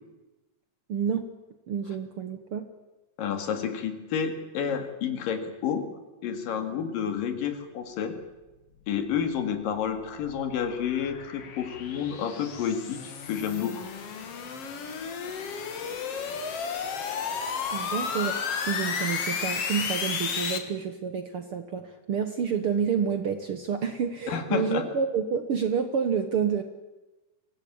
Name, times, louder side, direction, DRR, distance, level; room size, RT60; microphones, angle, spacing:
voice 1, 0.9-1.3 1.7-2.6 17.7-26.6, right 7 dB, 65° right, 8 dB, 1.5 m, -29 dB
voice 2, 3.2-5.9 6.2-8.2 8.9-13.9 24.3-24.9, left 7 dB, 85° left, 7 dB, 3.7 m, -30 dB
sound 1, 9.4-20.6, left 6 dB, 50° left, 2.5 m, -33 dB
24.0 x 17.0 x 8.7 m, 1.1 s
omnidirectional pair, 3.8 m